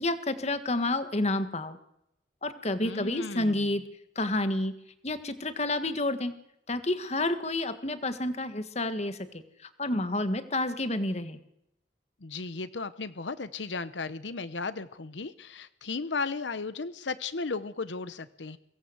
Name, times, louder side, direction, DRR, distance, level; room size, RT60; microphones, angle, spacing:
voice 1, 0.0-1.8 2.4-3.8 4.2-4.8 5.0-6.3 6.7-11.4, left 2 dB, 40° left, 10 dB, 1.8 m, -29 dB
voice 2, 2.8-3.6 12.2-18.6, left 4 dB, 85° left, 14 dB, 0.9 m, -35 dB
23.5 x 17.5 x 8.0 m, 0.80 s
head